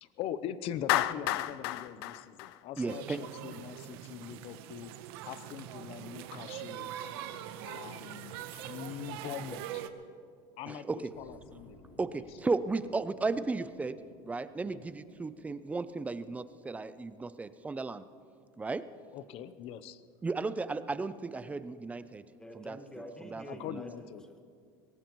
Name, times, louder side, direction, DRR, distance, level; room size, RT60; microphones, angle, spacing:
voice 1, 0.0-4.9 5.2-6.9 7.6-9.7 10.6-11.8 12.1-12.2 14.6-14.9 19.1-20.0 23.5-24.2, left 10 dB, 50° left, 14 dB, 0.7 m, -42 dB
Clapping, 0.9-3.2, left 14 dB, 85° left, 0.5 m, -31 dB
voice 2, 2.8-3.2 10.7-11.1 12.0-14.0 14.2-18.0 18.6-18.8 20.2-22.2 22.6-22.8 23.2-23.4 23.7-23.8, right 3 dB, 10° right, 14 dB, 0.4 m, -34 dB
sound 1, 2.9-9.9, right 11 dB, 80° right, 0.9 m, -43 dB
sound 2, 11.1-18.1, left 1 dB, 20° left, 5.0 m, -59 dB
voice 3, 22.4-24.4, equal, 5° left, 4 dB, 1.5 m, -47 dB
22.5 x 18.0 x 3.1 m, 2.2 s
cardioid pair, 145°, 13 cm